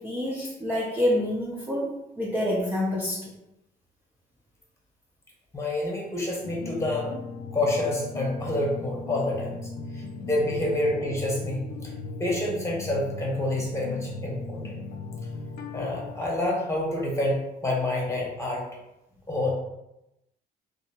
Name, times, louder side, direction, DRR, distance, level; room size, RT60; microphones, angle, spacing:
voice 1, 0.0-3.3, left 1 dB, 10° right, -5 dB, 0.6 m, -27 dB
voice 2, 5.5-7.1 7.5-9.6 9.9-11.9 12.2-14.8 15.7-18.7 19.3-19.5, left 1 dB, 15° left, -3 dB, 1.0 m, -28 dB
sound 1, 6.4-16.2, left 3 dB, 65° left, 0.4 m, -37 dB
3.0 x 2.7 x 2.9 m, 0.89 s
cardioid pair, 110°, 17 cm